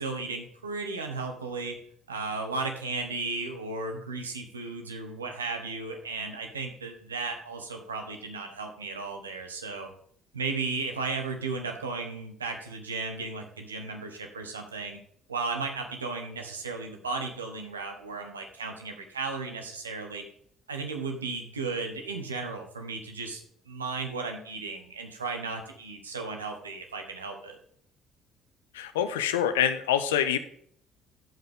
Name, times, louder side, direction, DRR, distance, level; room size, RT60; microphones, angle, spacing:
voice 1, 0.0-1.8 2.1-9.9 10.3-15.0 15.3-20.2 20.7-23.4 23.7-27.6, right 4 dB, 85° right, 4 dB, 1.1 m, -35 dB
voice 2, 28.7-30.4, left 9 dB, 75° left, 10 dB, 0.6 m, -26 dB
13.0 x 5.5 x 3.6 m, 0.62 s
figure-of-eight pair, 50°, 0 cm